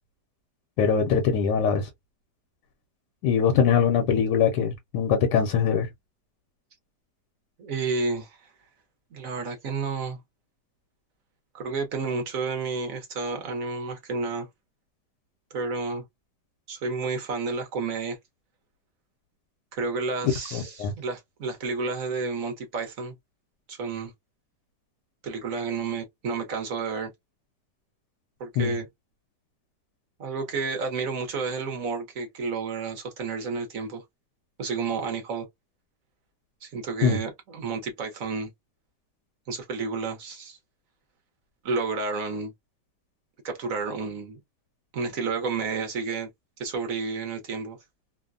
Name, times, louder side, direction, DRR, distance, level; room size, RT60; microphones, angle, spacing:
voice 1, 0.8-1.9 3.2-5.9 20.5-20.9 28.6-28.8 37.0-37.2, left 7 dB, 80° left, 1.3 m, -22 dB
voice 2, 7.6-8.5 9.1-10.2 11.5-14.5 15.5-16.0 16.7-18.2 19.7-23.1 23.7-24.1 25.2-27.1 28.4-28.9 30.2-34.0 34.6-35.5 36.6-38.5 39.5-40.6 41.6-42.5 43.4-44.4 44.9-46.3 46.6-47.8, right 4 dB, 60° right, 1.2 m, -31 dB
3.1 x 2.2 x 2.4 m
omnidirectional pair, 1.8 m